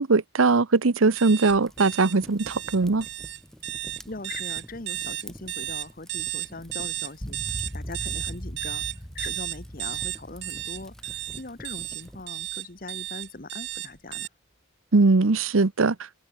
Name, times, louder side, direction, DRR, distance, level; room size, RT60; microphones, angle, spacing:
voice 1, 0.0-3.1 14.9-16.0, right 3 dB, 85° right, 0.9 m, -20 dB
sound 1, 1.2-14.3, right 14 dB, 55° right, 4.5 m, -33 dB
Fire, 1.6-12.3, equal, ahead, 6.8 m, -49 dB
voice 2, 4.1-8.8 9.1-14.3, left 2 dB, 45° left, 1.6 m, -41 dB
sound 2, 7.2-12.6, equal, 20° left, 5.6 m, -40 dB
head